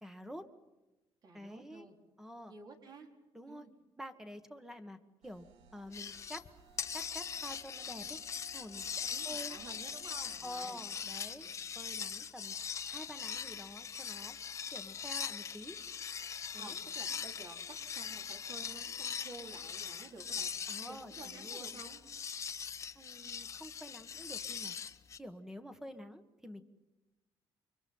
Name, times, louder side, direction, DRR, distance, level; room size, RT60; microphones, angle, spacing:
voice 1, 0.0-0.5 1.3-1.9 2.2-2.5 3.3-3.7 4.0-5.5 5.7-6.4 6.9-8.2 8.5-9.6 10.4-11.5 11.7-12.6 12.9-14.4 14.7-15.8 16.5-16.8 20.7-21.8 22.9-24.7 25.2-26.6, equal, 5° right, 9 dB, 1.6 m, -48 dB
voice 2, 1.2-2.0 2.5-3.1 3.5-3.7 9.1-10.8 11.2-11.5 16.6-22.0, right 3 dB, 45° right, 3 dB, 4.3 m, -52 dB
sound 1, 5.2-10.4, right 6 dB, 90° right, 2.3 m, -61 dB
sound 2, 5.9-6.5 6.8-25.2, left 7 dB, 30° left, 1.0 m, -41 dB
29.0 x 24.5 x 5.6 m, 1.0 s
cardioid pair, 160°, 10 cm